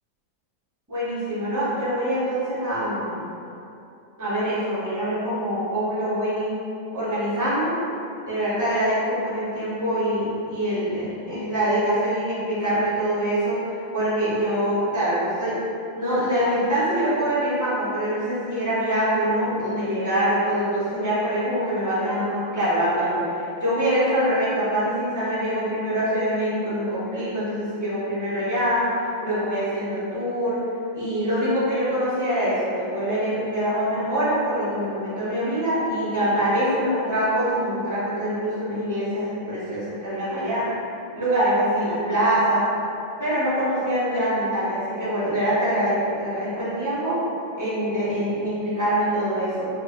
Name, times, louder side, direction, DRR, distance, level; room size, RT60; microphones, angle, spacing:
voice 1, 0.9-3.2 4.2-6.5 6.9-7.7 8.2-15.6 15.9-28.9 29.2-30.6 30.9-40.6 41.1-42.6 43.2-47.2 47.6-49.7, equal, 15° right, -12 dB, 0.7 m, -24 dB
3.1 x 2.7 x 3.6 m, 2.7 s
omnidirectional pair, 2.1 m